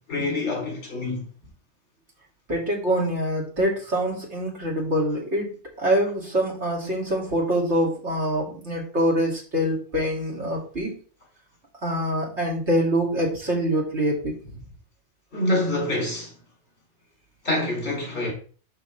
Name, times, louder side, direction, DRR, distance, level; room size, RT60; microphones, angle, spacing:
voice 1, 0.1-1.2 15.3-16.3 17.4-18.3, left 1 dB, 65° left, 3.4 m, -26 dB
voice 2, 2.5-10.9 11.8-14.5, equal, 75° right, 2.9 m, -25 dB
11.5 x 4.0 x 3.3 m
omnidirectional pair, 1.2 m